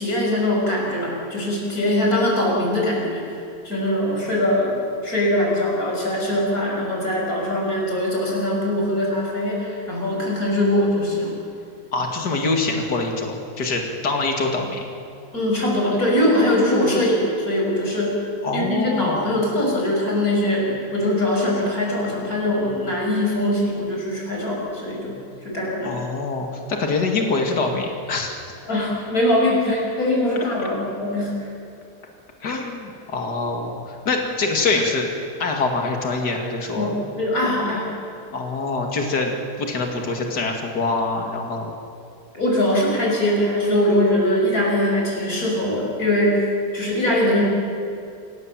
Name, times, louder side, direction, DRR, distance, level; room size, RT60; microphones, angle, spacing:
voice 1, 0.0-3.4 3.6-4.8 5.0-11.3 15.3-18.2 18.5-25.2 25.4-26.0 28.7-31.4 36.7-37.9 42.3-46.5 46.7-47.4, left 1 dB, 60° left, -2 dB, 6.7 m, -22 dB
voice 2, 11.9-14.8 18.4-19.2 25.8-28.3 30.6-30.7 32.4-35.1 35.4-36.9 38.3-41.7, left 3 dB, 80° left, 2 dB, 2.9 m, -24 dB
27.5 x 18.0 x 7.7 m, 2.6 s
omnidirectional pair, 1.8 m